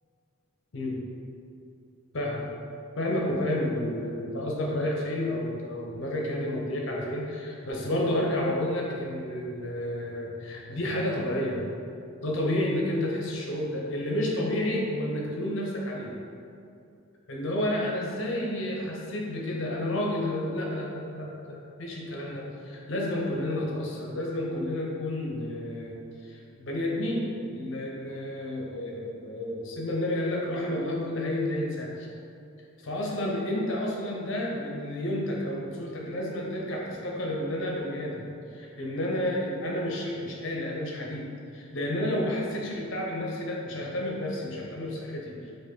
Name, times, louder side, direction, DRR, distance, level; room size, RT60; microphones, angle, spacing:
voice 1, 3.0-11.6 12.2-16.1 17.3-32.1 32.8-38.3 38.5-45.5, left 1 dB, 60° left, -2 dB, 0.7 m, -30 dB
4.4 x 2.6 x 4.4 m, 2.5 s
head